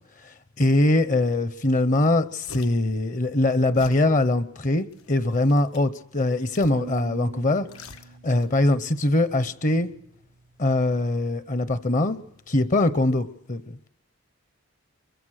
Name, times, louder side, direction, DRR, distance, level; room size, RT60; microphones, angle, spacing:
voice 1, 0.2-7.7 8.2-9.9 10.6-12.2 12.5-13.9, left 2 dB, 35° left, 15 dB, 0.8 m, -22 dB
sound 1, 1.6-1.7 2.0-2.9 3.7-4.1 4.8-5.9 6.5-7.1 7.4-8.5 8.8-9.0, left 3 dB, 90° left, 1.5 m, -45 dB
sound 2, 6.8-9.7, right 4 dB, 75° right, 1.0 m, -43 dB
24.0 x 23.0 x 6.4 m, 0.73 s
head